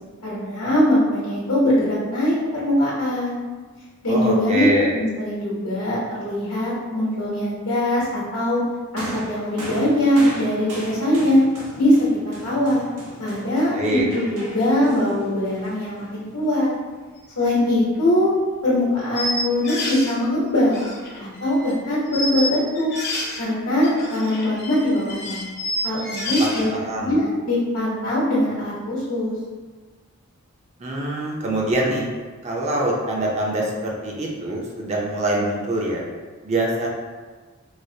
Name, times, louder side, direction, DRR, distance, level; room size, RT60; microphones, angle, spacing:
voice 1, 0.2-3.4 4.0-4.7 4.9-8.6 8.9-11.4 11.8-12.0 12.2-12.8 13.2-16.7 17.4-18.3 18.6-20.8 21.2-22.9 23.4-25.4 25.8-26.7 27.0-29.3, left 1 dB, 85° left, -8 dB, 1.0 m, -21 dB
voice 2, 4.1-4.9 13.7-14.0 26.4-27.2 30.8-32.1 32.4-36.0 36.4-36.9, right 1 dB, 30° right, -2 dB, 0.5 m, -24 dB
sound 1, 9.0-16.5 17.5-17.6, equal, 90° right, 0.8 m, -37 dB
sound 2, 17.4-17.5 17.9-18.0 19.1-20.1 20.6-21.8 22.1-23.4 23.8-26.7, left 1 dB, 50° left, 0.7 m, -29 dB
4.7 x 2.0 x 2.7 m, 1.4 s
head